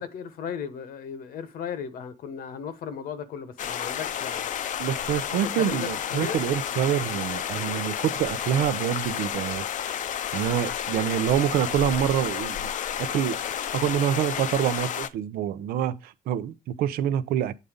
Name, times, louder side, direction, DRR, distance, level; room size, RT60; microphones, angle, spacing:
voice 1, 0.0-4.4 5.1-5.2 5.5-6.4, left 7 dB, 75° left, 1.1 m, -36 dB
sound 1, 3.6-15.1, left 9 dB, 60° left, 0.6 m, -31 dB
voice 2, 4.8-9.6 10.3-12.7 13.0-13.4 13.7-17.5, right 10 dB, 90° right, 0.6 m, -26 dB
8.3 x 4.0 x 5.0 m
cardioid pair, 105°, 15 cm